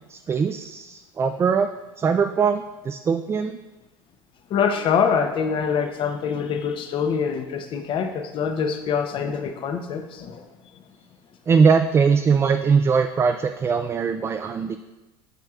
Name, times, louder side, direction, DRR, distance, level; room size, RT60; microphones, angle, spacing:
voice 1, 0.1-1.7 2.0-3.6 11.5-14.8, right 5 dB, 20° right, 7 dB, 0.3 m, -21 dB
voice 2, 4.5-10.5, left 6 dB, 40° left, 6 dB, 0.8 m, -24 dB
9.2 x 5.5 x 2.4 m, 1.1 s
supercardioid pair, 95°, 13 cm